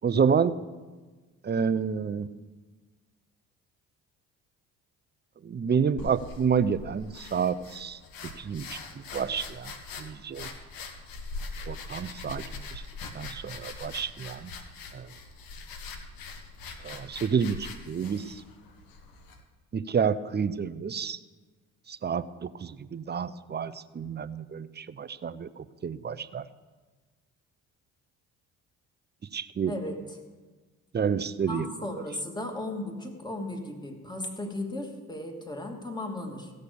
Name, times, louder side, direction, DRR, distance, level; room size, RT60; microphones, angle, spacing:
voice 1, 0.0-0.5 1.4-2.3 5.4-8.0 8.4-9.7 10.0-10.5 11.7-12.8 13.1-14.5 14.9-15.1 16.8-18.4 19.7-21.2 21.9-26.5 29.3-29.7 30.9-31.7, right 6 dB, 30° right, 15 dB, 0.7 m, -29 dB
sound 1, 6.0-19.4, left 3 dB, 70° left, 1.6 m, -42 dB
voice 2, 29.7-30.2 31.5-36.5, left 1 dB, 10° left, 3 dB, 2.7 m, -36 dB
16.0 x 6.6 x 7.0 m, 1.3 s
hypercardioid pair, 60°, 36 cm